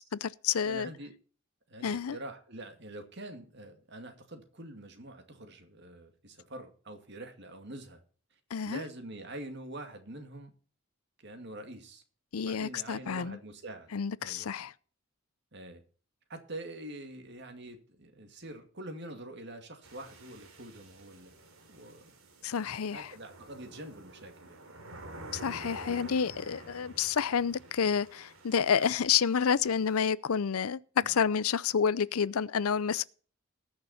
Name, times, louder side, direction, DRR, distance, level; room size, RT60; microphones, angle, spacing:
voice 1, 0.1-0.9 1.8-2.2 8.5-8.8 12.3-13.4 13.9-14.7 22.4-23.1 25.3-33.1, left 7 dB, 80° left, 0.5 m, -29 dB
voice 2, 0.6-1.1 1.7-8.0 8.6-10.5 11.2-12.0 12.4-13.9 14.2-14.5 15.5-15.8 16.3-21.3 21.7-22.1 22.9-24.7 24.9-25.1 25.8-26.1 31.0-31.2, right 1 dB, 50° right, 2.2 m, -45 dB
sound 1, 19.8-30.1, right 1 dB, 70° right, 3.0 m, -50 dB
20.0 x 6.7 x 4.2 m
head